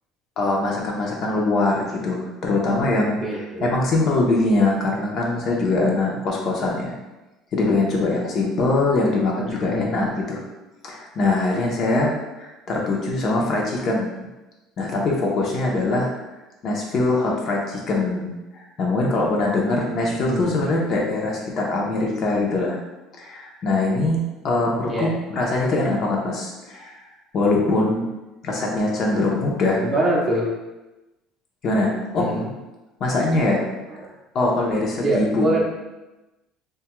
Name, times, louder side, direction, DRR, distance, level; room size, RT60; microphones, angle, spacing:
voice 1, 0.4-6.9 7.5-10.4 10.8-14.1 14.8-16.1 16.6-22.8 23.2-26.9 27.3-28.1 28.4-29.8 31.6-32.3 33.0-33.6 34.3-35.6, left 2 dB, 40° left, -1 dB, 0.6 m, -22 dB
voice 2, 3.2-3.7 9.5-9.9 20.1-20.6 24.8-25.1 29.8-30.5 32.2-32.5 33.9-34.1 35.0-35.6, right 1 dB, 20° right, -3 dB, 0.5 m, -25 dB
2.7 x 2.3 x 2.9 m, 1.0 s
cardioid pair, 140°, 0 cm